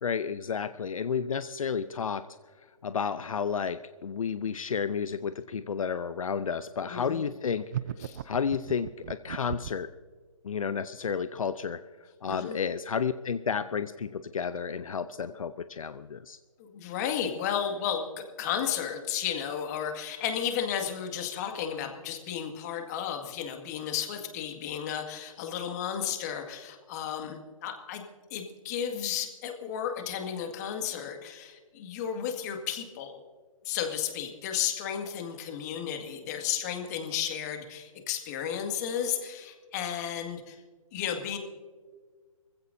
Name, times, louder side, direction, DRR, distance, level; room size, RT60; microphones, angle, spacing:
voice 1, 0.0-2.3 2.8-7.7 8.2-9.9 10.4-11.8 12.2-16.4, left 6 dB, 70° left, 12 dB, 0.6 m, -31 dB
voice 2, 6.8-7.2 8.0-8.2 12.3-12.6 16.6-28.0 28.3-33.2 33.6-40.6 40.9-41.4, left 8 dB, 30° left, 4 dB, 2.0 m, -33 dB
sound 1, 7.7-9.9, right 10 dB, 30° right, 0.4 m, -36 dB
24.0 x 15.5 x 2.7 m, 1.5 s
figure-of-eight pair, 145°, 18 cm